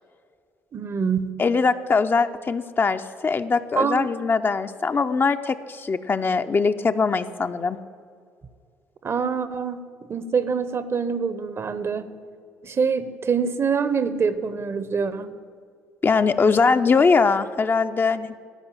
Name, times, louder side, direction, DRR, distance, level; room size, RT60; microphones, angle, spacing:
voice 1, 0.7-1.4 3.8-4.1 9.0-9.8 10.1-12.1 12.6-15.4, right 5 dB, 40° right, 13 dB, 0.8 m, -25 dB
voice 2, 1.4-7.8 16.0-18.3, left 4 dB, 35° left, 9 dB, 0.6 m, -21 dB
13.0 x 5.3 x 9.0 m, 2.2 s
hypercardioid pair, 55°, 6 cm